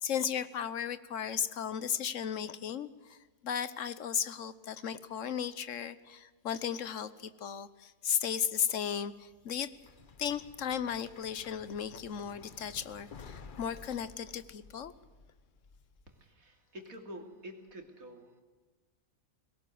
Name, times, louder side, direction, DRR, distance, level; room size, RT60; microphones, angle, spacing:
voice 1, 0.0-3.2 3.4-9.7 10.2-14.9, left 8 dB, 65° left, 15 dB, 1.3 m, -35 dB
sound 1, 8.8-16.1, left 4 dB, 40° left, 1.1 m, -54 dB
voice 2, 16.1-18.4, equal, 80° right, 4 dB, 3.1 m, -48 dB
20.0 x 18.0 x 7.8 m, 1.3 s
omnidirectional pair, 1.5 m